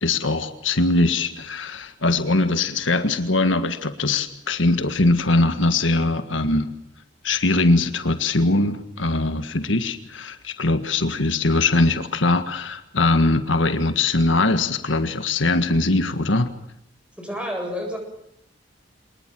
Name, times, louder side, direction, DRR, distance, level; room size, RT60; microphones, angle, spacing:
voice 1, 0.0-6.7 7.2-16.5, left 2 dB, 85° left, 9 dB, 1.7 m, -21 dB
voice 2, 17.2-18.0, equal, 5° right, 2 dB, 8.0 m, -29 dB
26.0 x 20.0 x 7.7 m, 0.73 s
head